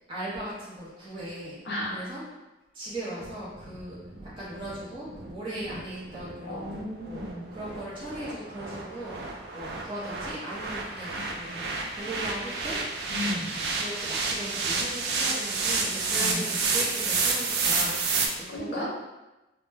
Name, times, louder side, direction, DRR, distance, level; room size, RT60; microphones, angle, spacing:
voice 1, 0.1-1.6 1.9-2.2 2.7-6.7 7.0-7.2 7.5-11.7 11.9-12.8 13.8-18.9, right 1 dB, 25° right, -9 dB, 0.6 m, -38 dB
voice 2, 1.6-2.0 6.4-7.5 11.1-11.6 13.1-13.6 16.2-16.5 18.5-18.9, left 1 dB, 65° left, -4 dB, 0.6 m, -35 dB
sound 1, 3.2-18.3, right 4 dB, 60° right, 0.3 m, -30 dB
2.1 x 2.0 x 3.3 m, 1.0 s
head